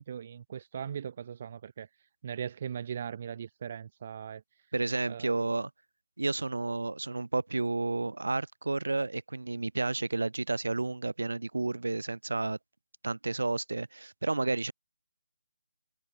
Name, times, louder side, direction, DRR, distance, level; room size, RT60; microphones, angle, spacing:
voice 1, 0.0-1.9 2.2-4.4 5.1-5.4, right 8 dB, 40° right, 1.1 m, -39 dB
voice 2, 4.7-5.7 6.2-12.6 13.0-14.7, right 3 dB, 85° right, 2.8 m, -31 dB
figure-of-eight pair, 160°, 0 cm